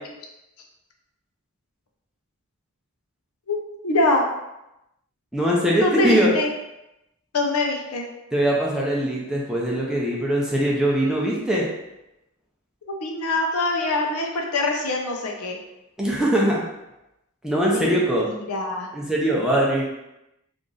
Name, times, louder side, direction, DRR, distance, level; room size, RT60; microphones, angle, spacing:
voice 1, 3.8-4.3 5.8-6.5 7.3-8.1 13.0-15.6 17.7-18.9, left 2 dB, 90° left, 1 dB, 0.6 m, -24 dB
voice 2, 5.3-6.3 8.3-11.7 16.0-16.6 17.4-18.3 18.9-19.9, right 1 dB, 5° right, -4 dB, 0.6 m, -21 dB
3.0 x 2.5 x 3.7 m, 0.91 s
head